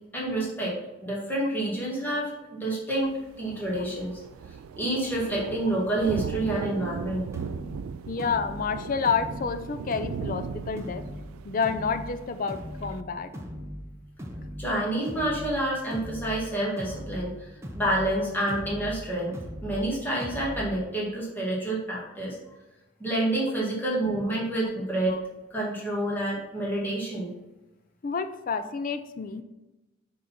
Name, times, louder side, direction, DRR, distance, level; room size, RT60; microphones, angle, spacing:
voice 1, 0.1-0.8 1.0-2.3 2.6-4.2 4.8-7.3 14.6-17.5 17.7-19.4 19.6-22.4 23.0-25.2 25.5-27.3, right 1 dB, 10° left, -5 dB, 1.9 m, -28 dB
Thunder, 3.0-13.0, right 7 dB, 85° right, 0.3 m, -38 dB
sound 1, 6.9-20.9, equal, 15° right, 0.7 m, -40 dB
voice 2, 8.1-11.0 11.4-13.3 25.1-25.2 28.0-29.4, left 5 dB, 40° left, 10 dB, 0.4 m, -29 dB
6.5 x 3.9 x 5.7 m, 1.0 s
head